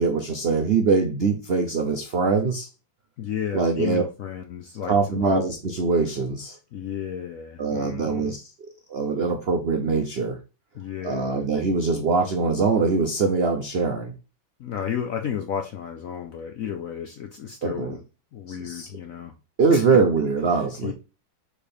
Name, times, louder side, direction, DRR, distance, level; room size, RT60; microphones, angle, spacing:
voice 1, 0.0-2.7 3.5-4.0 4.9-6.6 7.6-10.4 11.0-14.1 17.6-18.0 18.5-18.9 19.6-20.9, right 4 dB, 70° right, 0.5 m, -23 dB
voice 2, 3.2-5.4 6.7-8.4 10.7-11.4 14.6-18.0 18.3-19.3 19.7-20.0 20.8-20.9, left 8 dB, 70° left, 0.8 m, -33 dB
4.9 x 4.3 x 5.1 m
omnidirectional pair, 2.1 m